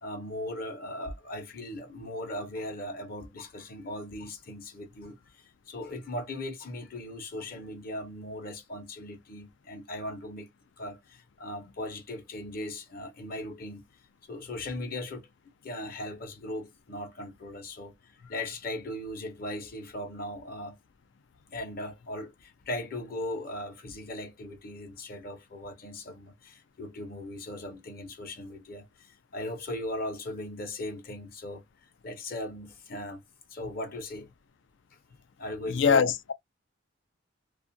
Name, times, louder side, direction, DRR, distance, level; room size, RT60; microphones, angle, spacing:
voice 1, 0.0-10.5 10.8-13.8 14.3-15.3 15.6-17.9 18.2-20.8 21.5-31.6 32.0-33.2 33.5-34.3 35.4-36.1, left 1 dB, 55° left, 0.7 m, -38 dB
voice 2, 35.7-36.3, left 6 dB, 85° left, 0.4 m, -23 dB
2.4 x 2.4 x 2.6 m
head